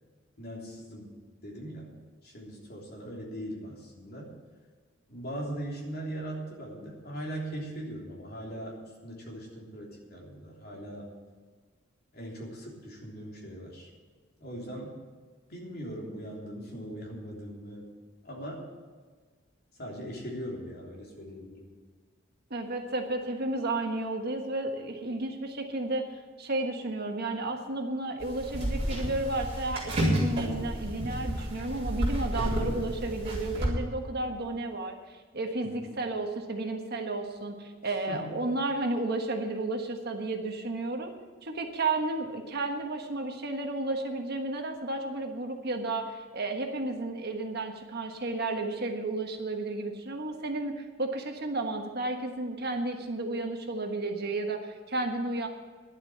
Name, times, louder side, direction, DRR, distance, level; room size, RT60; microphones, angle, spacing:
voice 1, 0.4-1.1 1.4-1.9 2.2-4.3 5.1-11.1 12.1-13.9 14.4-14.9 15.5-17.9 18.2-18.6 19.8-21.7 35.7-35.9 37.8-38.3, right 1 dB, 50° left, -2 dB, 3.4 m, -40 dB
voice 2, 22.5-26.0 26.4-41.1 41.4-55.5, right 2 dB, 50° right, 4 dB, 1.4 m, -32 dB
sound 1, 28.2-33.7, equal, 35° right, 4.3 m, -31 dB
11.0 x 7.9 x 9.3 m, 1.5 s
head